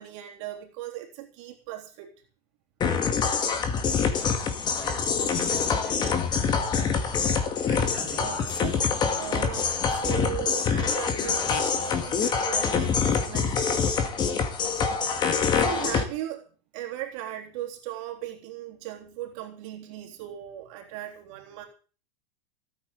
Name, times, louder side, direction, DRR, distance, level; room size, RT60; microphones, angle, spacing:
voice 1, 0.0-2.1 8.1-8.9 9.1-13.5 15.2-16.5 16.7-21.7, right 13 dB, 50° right, 3.6 m, -38 dB
sound 1, 2.8-16.0, left 6 dB, 20° left, 2.0 m, -25 dB
voice 2, 4.5-9.1 15.4-15.9, right 3 dB, ahead, 7.0 m, -45 dB
17.5 x 9.3 x 6.9 m
supercardioid pair, 160°, 20 cm